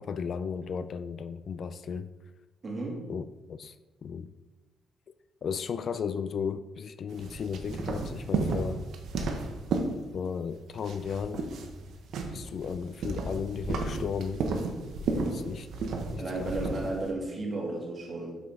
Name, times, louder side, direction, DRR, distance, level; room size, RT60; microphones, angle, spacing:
voice 1, 0.0-2.1 3.1-3.7 4.0-4.3 5.4-8.9 10.1-11.6 12.3-14.4 15.1-15.7 16.1-16.6, left 6 dB, 55° left, 12 dB, 0.3 m, -35 dB
voice 2, 2.6-3.0 15.1-15.4 16.1-18.4, right 2 dB, 35° right, -1 dB, 2.1 m, -34 dB
sound 1, 7.1-10.5 10.7-17.1, right 3 dB, 75° right, 0.9 m, -33 dB
5.8 x 5.7 x 3.8 m, 1.1 s
cardioid pair, 90°, 0 cm